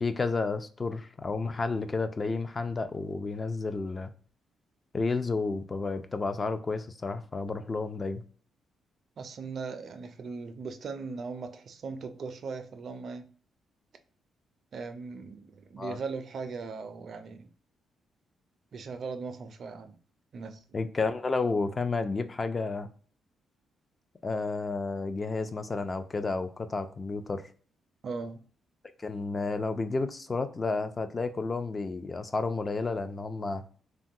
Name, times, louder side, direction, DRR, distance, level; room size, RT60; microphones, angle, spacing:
voice 1, 0.0-4.1 4.9-8.2 15.8-16.0 20.7-22.9 24.2-27.5 29.0-33.6, left 3 dB, 30° left, 0.3 m, -31 dB
voice 2, 9.2-13.3 14.7-17.5 18.7-20.0 20.3-20.6 28.0-28.4, right 4 dB, 55° right, 0.4 m, -39 dB
3.0 x 2.2 x 2.6 m
cardioid pair, 95°, 0 cm